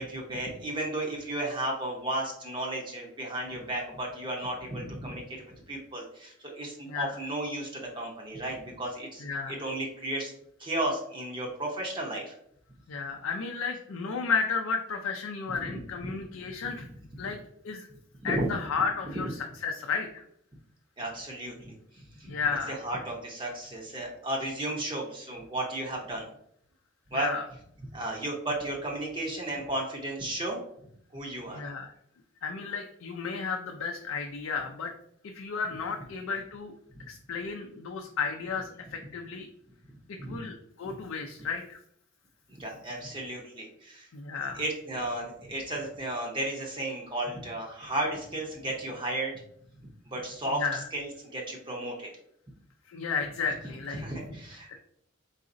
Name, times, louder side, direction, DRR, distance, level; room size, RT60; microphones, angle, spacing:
voice 1, 0.0-9.2 9.6-10.3 10.6-12.3 16.0-16.1 17.2-17.3 18.2-18.5 19.2-19.3 21.0-21.7 22.2-22.4 22.8-26.3 27.1-27.3 27.9-30.6 31.1-31.6 40.2-40.4 40.8-40.9 42.5-44.1 44.5-49.3 50.1-50.6 50.9-52.1 54.0-54.8, right 1 dB, 25° right, -1 dB, 0.6 m, -34 dB
voice 2, 6.9-7.2 9.2-9.6 12.9-16.9 17.2-17.4 17.6-17.9 18.2-20.2 22.3-22.8 27.1-27.4 31.5-31.9 32.4-34.9 35.3-36.7 37.1-39.5 40.1-41.8 44.1-44.6 50.5-50.9 52.9-54.0 54.7-54.8, left 5 dB, 80° left, 3 dB, 0.4 m, -33 dB
4.0 x 3.8 x 2.5 m, 0.70 s
head